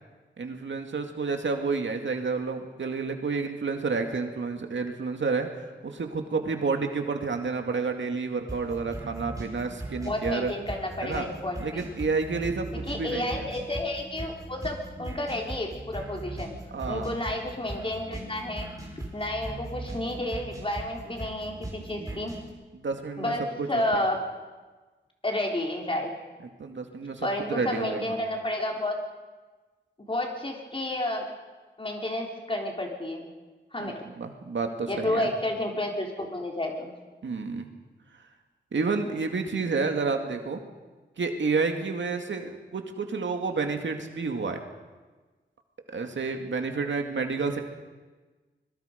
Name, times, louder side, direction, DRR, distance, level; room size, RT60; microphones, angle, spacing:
voice 1, 0.4-10.5 11.0-11.3 11.6-13.5 16.7-17.1 22.1-22.2 22.7-24.0 26.6-28.0 33.8-35.3 37.2-37.7 38.7-40.6 41.2-44.6 45.9-47.6, right 4 dB, 75° right, 5 dB, 2.2 m, -30 dB
sound 1, 8.5-22.5, right 1 dB, 15° right, 4.7 m, -39 dB
voice 2, 10.0-11.8 12.9-16.5 16.9-18.7 19.1-22.4 23.2-24.2 25.2-26.1 27.2-29.0 30.1-31.3 31.8-33.3 33.7-34.0 34.9-36.9, left 1 dB, 25° left, 1 dB, 3.8 m, -31 dB
25.5 x 22.0 x 5.2 m, 1.3 s
wide cardioid pair, 100°, 20 cm